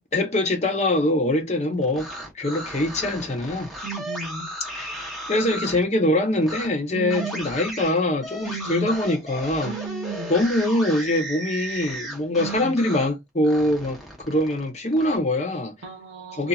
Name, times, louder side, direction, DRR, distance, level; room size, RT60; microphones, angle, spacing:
voice 1, 0.1-2.1 2.3-3.7 4.7-4.9 5.3-9.7 10.3-15.7 16.3-16.5, left 1 dB, 35° left, 0.7 m, -23 dB
sound 1, 1.8-5.8 6.4-6.7 7.1-13.1 13.4-15.2, right 1 dB, ahead, 0.8 m, -35 dB
voice 2, 3.8-4.5 6.9-7.5 8.4-9.0 9.6-10.3 12.4-12.7 15.8-16.5, right 4 dB, 90° right, 0.6 m, -34 dB
2.7 x 2.6 x 2.3 m
head